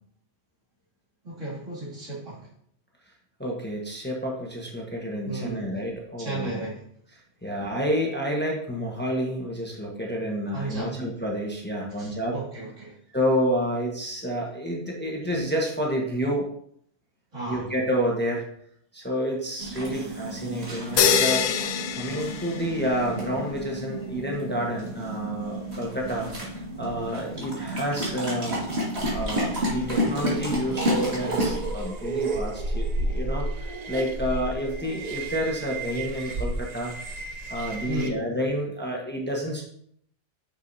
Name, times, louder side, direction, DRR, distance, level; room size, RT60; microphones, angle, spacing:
voice 1, 1.2-2.5 5.2-5.7 6.2-6.9 10.5-11.0 12.0-13.0 17.3-17.7 37.9-38.3, right 2 dB, 85° right, -7 dB, 3.1 m, -34 dB
voice 2, 3.4-6.6 7.4-12.4 13.1-16.5 17.5-18.4 18.9-21.4 22.0-26.3 26.8-28.6 29.1-36.9 37.5-39.7, equal, 10° left, -2 dB, 1.0 m, -29 dB
sound 1, 19.6-31.7, equal, 60° right, 2.1 m, -31 dB
sound 2, 21.0-23.1, left 7 dB, 80° left, 0.9 m, -24 dB
sound 3, 29.0-38.1, right 2 dB, 45° right, 0.6 m, -32 dB
6.5 x 6.1 x 2.7 m, 0.67 s
omnidirectional pair, 1.2 m